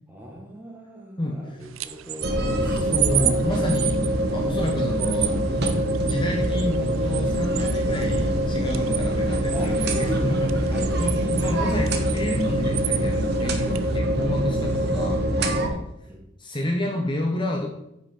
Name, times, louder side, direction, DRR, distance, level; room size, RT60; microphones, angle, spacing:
voice 1, 0.1-2.9 9.5-10.4 10.7-11.1 16.0-16.2, equal, 10° right, 0 dB, 1.5 m, -38 dB
voice 2, 1.2-1.7 2.6-4.0 4.3-5.4 6.0-15.8 16.4-17.7, left 1 dB, 25° left, 1 dB, 0.8 m, -29 dB
sound 1, 1.6-14.0, right 15 dB, 75° right, 0.5 m, -33 dB
sound 2, 2.2-15.7, right 1 dB, 50° right, 1.1 m, -24 dB
9.3 x 5.9 x 4.5 m, 0.84 s
head